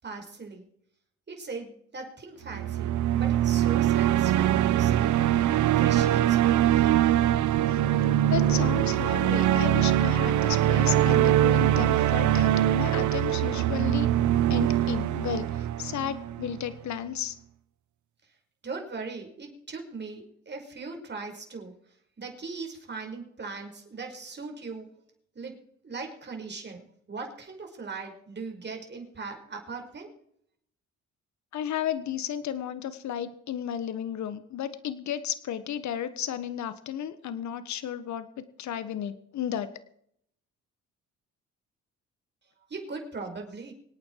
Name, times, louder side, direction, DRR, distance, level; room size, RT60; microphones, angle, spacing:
voice 1, 0.0-0.6 1.3-7.1 18.6-21.7 22.2-24.9 25.4-30.1 42.7-43.7, right 4 dB, 35° right, 2 dB, 5.2 m, -39 dB
sound 1, 2.5-16.7, right 12 dB, 75° right, 0.9 m, -23 dB
voice 2, 8.2-14.1 14.5-17.3 31.5-38.3 38.6-39.7, left 10 dB, 70° left, 13 dB, 1.4 m, -33 dB
25.5 x 8.9 x 4.7 m, 0.69 s
cardioid pair, 90°, 30 cm